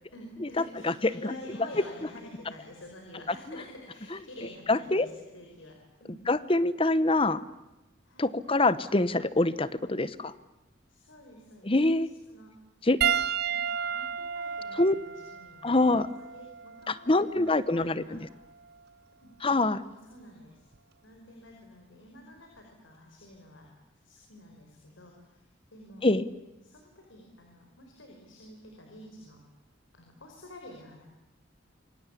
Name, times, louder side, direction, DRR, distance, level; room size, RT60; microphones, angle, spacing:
voice 1, 0.1-6.3 8.0-8.4 10.9-12.0 12.3-12.5 13.5-13.6 13.9-16.0 16.2-18.3 19.2-19.3 19.8-20.6 21.0-23.7 24.0-26.1 26.6-29.4 29.9-31.0, left 1 dB, 75° left, 2 dB, 5.1 m, -49 dB
voice 2, 0.8-1.3 1.8-1.9 4.7-5.1 6.3-7.4 8.2-10.3 11.6-12.1 12.8-13.0 14.7-14.9 15.6-16.1 16.9-18.2 19.4-19.8 26.0-26.3, left 2 dB, 25° left, 16 dB, 1.0 m, -25 dB
Piano, 13.0-17.7 18.6-18.8 20.7-20.8, right 8 dB, 50° right, 1.0 m, -32 dB
27.0 x 24.0 x 8.4 m, 0.98 s
head